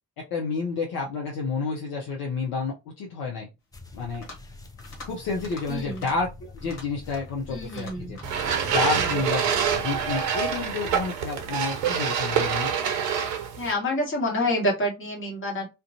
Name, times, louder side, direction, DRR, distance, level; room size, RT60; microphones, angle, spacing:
voice 1, 0.2-3.5 3.9-4.3 5.0-8.2 8.6-12.7, left 4 dB, 50° left, -1 dB, 0.7 m, -30 dB
sound 1, 3.7-11.1, left 2 dB, 10° left, 0.4 m, -44 dB
sound 2, 4.0-4.5 4.8-5.1 5.4-5.6 5.9-6.1 6.6-7.4 7.7-8.5, left 2 dB, 75° left, 1.0 m, -44 dB
voice 2, 5.7-6.0 7.5-8.2 8.9-9.1 13.6-15.7, left 1 dB, 25° left, -1 dB, 1.2 m, -28 dB
sound 3, 8.2-13.7, right 7 dB, 65° right, 0.7 m, -26 dB
2.4 x 2.2 x 2.7 m, 0.25 s
figure-of-eight pair, 45°, 47 cm